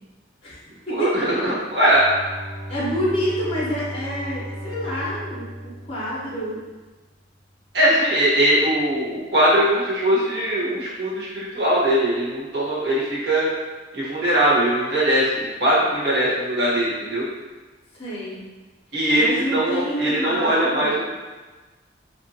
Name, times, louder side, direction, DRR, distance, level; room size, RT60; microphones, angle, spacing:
voice 1, 0.9-2.0 7.7-13.5 13.9-17.3 18.9-20.9, right 1 dB, 60° right, -8 dB, 1.0 m, -20 dB
Bowed string instrument, 1.8-6.8, equal, 85° right, 1.5 m, -36 dB
voice 2, 2.7-6.6 18.0-18.4 19.2-20.9, equal, 30° left, -7 dB, 0.7 m, -27 dB
2.6 x 2.4 x 2.7 m, 1.2 s
head